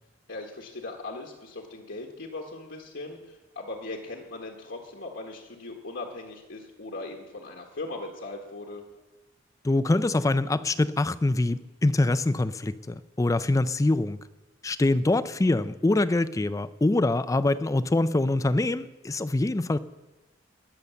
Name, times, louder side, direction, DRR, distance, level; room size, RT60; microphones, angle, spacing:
voice 1, 0.3-8.8, left 2 dB, 70° left, 0 dB, 1.5 m, -39 dB
voice 2, 9.6-14.2 14.6-19.8, left 2 dB, 15° left, 15 dB, 0.4 m, -24 dB
19.0 x 6.9 x 6.9 m, 1.1 s
head